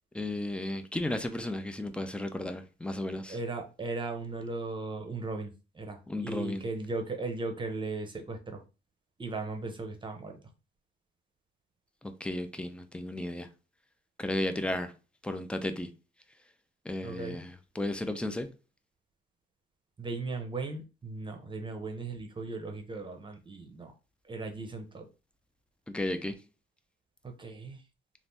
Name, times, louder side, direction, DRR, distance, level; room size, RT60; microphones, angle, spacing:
voice 1, 0.1-3.4 6.1-6.6 12.0-13.5 14.2-14.9 15.2-15.9 16.8-18.5 25.9-26.4, left 1 dB, 5° left, 0.5 m, -34 dB
voice 2, 3.3-8.6 9.2-10.4 17.0-17.4 20.0-23.9 24.3-25.0 27.2-27.8, right 3 dB, 25° right, 0.8 m, -37 dB
3.3 x 2.5 x 2.7 m
cardioid pair, 90°, 20 cm